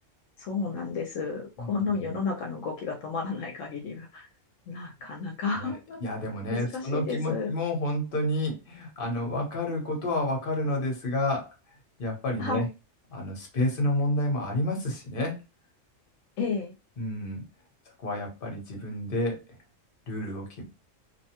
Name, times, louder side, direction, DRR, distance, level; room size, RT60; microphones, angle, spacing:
voice 1, 0.4-4.3 4.7-6.0 6.5-7.5 12.4-12.7 16.4-16.7, left 4 dB, 75° left, 1 dB, 1.0 m, -32 dB
voice 2, 1.6-2.2 5.5-5.7 6.0-11.5 12.0-12.7 13.1-15.4 17.0-17.4 18.0-19.4 20.1-20.6, left 1 dB, 45° left, 1 dB, 1.1 m, -30 dB
2.8 x 2.2 x 2.8 m, 0.27 s
omnidirectional pair, 1.3 m